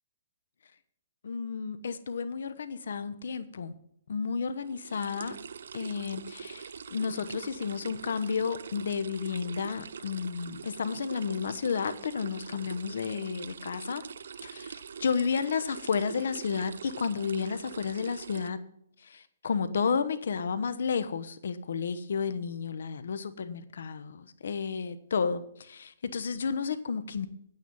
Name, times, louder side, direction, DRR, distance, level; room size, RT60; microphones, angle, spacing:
voice 1, 1.2-3.7 4.1-5.4 5.7-14.0 14.4-18.6 19.0-27.3, left 5 dB, 75° left, 1.0 m, -32 dB
sound 1, 4.6-18.5, right 6 dB, 75° right, 0.5 m, -44 dB
9.4 x 9.2 x 5.4 m
hypercardioid pair, 155°, 0 cm